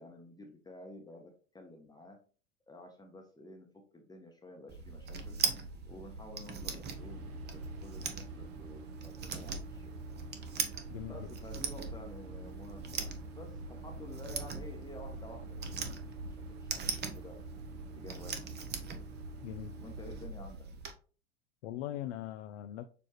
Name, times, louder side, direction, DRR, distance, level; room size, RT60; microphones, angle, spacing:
voice 1, 0.0-2.2 2.7-3.7 3.9-5.4 5.9-9.9 11.1-16.9 17.2-17.4 17.9-18.5 19.8-20.7, left 1 dB, 10° left, 0.9 m, -51 dB
sound 1, 4.7-20.9, right 5 dB, 25° right, 0.8 m, -41 dB
sound 2, 6.8-20.3, right 4 dB, 60° right, 1.0 m, -49 dB
voice 2, 10.9-11.3 19.4-19.7 21.6-22.8, left 12 dB, 65° left, 0.5 m, -40 dB
6.7 x 2.5 x 3.1 m
hypercardioid pair, 95°, 38 cm